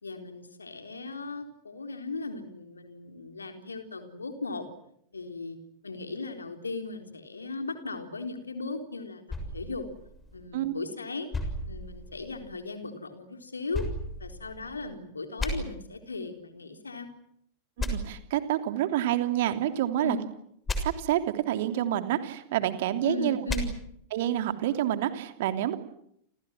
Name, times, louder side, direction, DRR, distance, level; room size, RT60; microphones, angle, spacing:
voice 1, 0.0-4.7 5.1-5.6 5.8-9.2 9.5-9.9 10.3-11.3 11.7-13.9 14.2-17.1 19.9-20.3 23.0-23.7, left 3 dB, 75° left, 6 dB, 3.9 m, -37 dB
sound 1, 9.3-10.7 11.3-12.6 13.7-14.9 15.4-15.5 17.8-17.9 20.7-20.8 23.5-23.6, left 2 dB, 15° left, 6.7 m, -34 dB
voice 2, 17.8-20.2 20.8-23.4 24.1-25.8, right 12 dB, 55° right, 8 dB, 3.0 m, -28 dB
29.5 x 29.5 x 6.1 m, 0.73 s
figure-of-eight pair, 90°, 0 cm